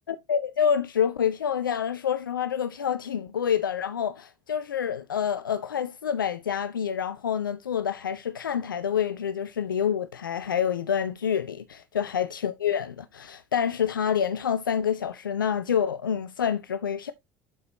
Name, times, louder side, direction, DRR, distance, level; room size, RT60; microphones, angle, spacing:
voice 1, 0.1-17.1, left 8 dB, 80° left, 0.4 m, -27 dB
11.5 x 4.7 x 3.0 m
figure-of-eight pair, 65°, 11 cm